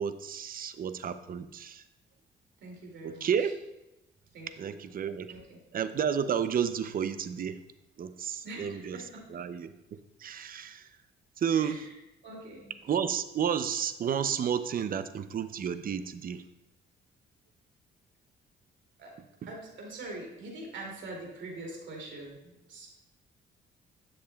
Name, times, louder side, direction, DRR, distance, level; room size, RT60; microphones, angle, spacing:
voice 1, 0.0-1.8 3.0-3.6 4.6-5.3 5.7-7.6 8.0-9.0 9.3-9.7 10.2-10.9 11.4-11.9 12.8-16.4, right 8 dB, 45° right, 12 dB, 0.5 m, -31 dB
voice 2, 2.6-3.5 4.3-4.8 5.3-5.6 8.4-9.0 11.5-11.9 12.2-12.7 19.0-19.1 19.5-22.9, right 2 dB, 65° right, -1 dB, 2.4 m, -44 dB
10.5 x 6.5 x 2.3 m, 0.95 s
cardioid pair, 90°, 20 cm